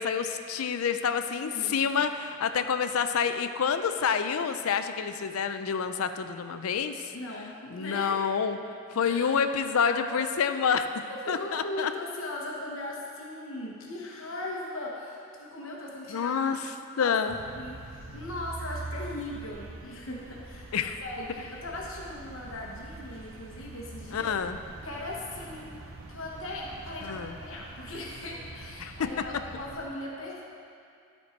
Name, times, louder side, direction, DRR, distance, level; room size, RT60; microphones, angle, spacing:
voice 1, 0.0-7.1 7.7-8.6 8.9-10.9 11.3-11.9 16.1-16.6 17.0-17.4 20.7-21.0 24.1-24.6 27.0-27.3 28.8-29.1, left 6 dB, 90° left, 9 dB, 0.4 m, -28 dB
voice 2, 1.4-1.8 7.1-8.2 9.0-9.3 9.7-10.4 11.1-16.3 16.7-17.1 17.5-20.7 21.0-24.3 24.8-25.7 26.1-30.4, left 1 dB, 70° left, -2 dB, 1.1 m, -39 dB
sound 1, 17.3-29.8, right 2 dB, 65° right, 0.7 m, -44 dB
13.0 x 4.4 x 4.4 m, 2.5 s
head